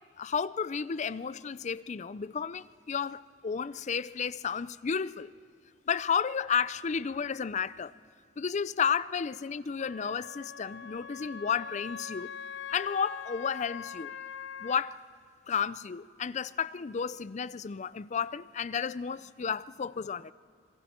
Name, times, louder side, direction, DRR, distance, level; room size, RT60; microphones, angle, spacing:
voice 1, 0.2-5.3 5.9-7.9 8.4-12.3 12.7-14.1 14.6-15.0 15.5-20.3, left 6 dB, 40° left, 0.4 m, -32 dB
Wind instrument woodwind instrument, 9.8-14.9, left 7 dB, 80° left, 0.7 m, -42 dB
26.0 x 23.0 x 4.4 m
head